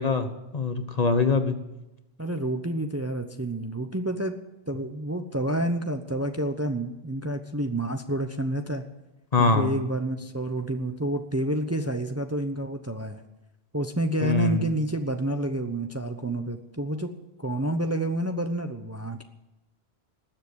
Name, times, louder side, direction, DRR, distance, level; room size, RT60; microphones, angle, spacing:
voice 1, 0.0-1.6 9.3-9.7 14.2-14.6, left 3 dB, 40° left, 8 dB, 1.2 m, -23 dB
voice 2, 2.2-4.3 4.7-8.8 9.4-13.2 13.7-17.1 17.4-19.2, right 1 dB, 15° right, 6 dB, 0.8 m, -29 dB
19.5 x 7.4 x 9.6 m, 0.96 s
omnidirectional pair, 1.1 m